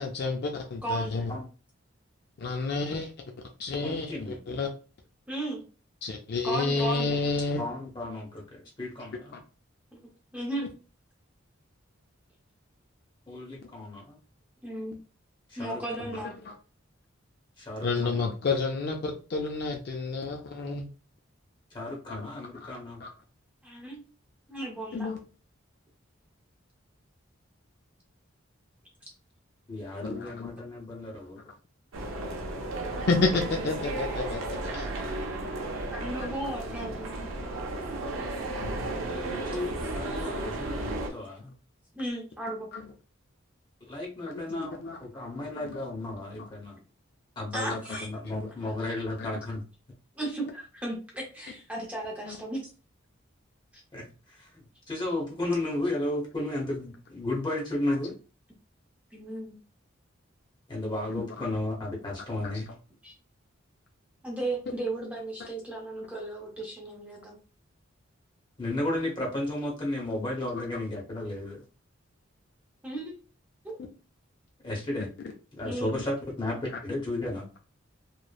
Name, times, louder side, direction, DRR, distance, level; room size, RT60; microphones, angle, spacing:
voice 1, 0.0-1.3 2.4-3.1 3.6-4.7 6.0-7.6 9.3-9.4 16.5-16.6 17.8-20.9 22.1-22.2 22.6-22.7 23.0-23.1 24.9-25.2 30.0-30.5 33.1-34.9 42.7-42.8 44.3-45.0 45.4-45.8 46.4-46.5 47.9-48.0 52.2-52.4 61.1-61.5 62.4-62.5 65.4-65.5, left 3 dB, 50° left, 2 dB, 0.4 m, -30 dB
voice 2, 0.8-1.2 4.0-4.1 5.3-5.6 6.4-7.1 9.9-10.0 10.3-10.7 14.6-15.0 15.6-16.3 23.6-24.0 24.5-25.1 35.9-37.3 41.9-42.7 45.1-45.2 47.5-48.1 50.2-52.6 59.1-59.6 63.0-63.1 64.2-67.4 72.8-73.1 73.6-73.8 75.6-75.9, right 1 dB, 5° right, -2 dB, 0.6 m, -35 dB
voice 3, 3.8-4.4 7.6-9.4 13.3-14.2 15.5-16.2 17.6-18.2 21.7-23.0 29.7-31.5 39.3-41.5 43.9-46.8 47.4-49.6 53.9-58.1 60.7-62.7 68.6-71.6 74.6-75.1 75.6-77.5, left 1 dB, 25° left, -2 dB, 0.8 m, -34 dB
sound 1, 31.9-41.1, right 2 dB, 85° right, 0.5 m, -34 dB
3.0 x 2.0 x 2.3 m, 0.35 s
head